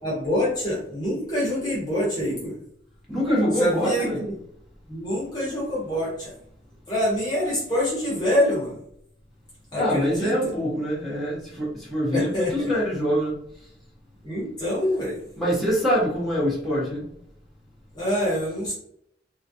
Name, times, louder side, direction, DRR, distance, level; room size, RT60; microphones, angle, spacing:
voice 1, 0.0-2.5 3.6-4.3 4.9-6.3 6.9-8.8 9.7-10.5 12.1-12.7 14.2-15.2 17.9-18.7, left 1 dB, 25° left, -7 dB, 1.0 m, -26 dB
voice 2, 3.1-4.2 9.8-13.3 15.4-17.0, equal, ahead, -8 dB, 1.1 m, -24 dB
3.1 x 2.4 x 2.7 m, 0.71 s
head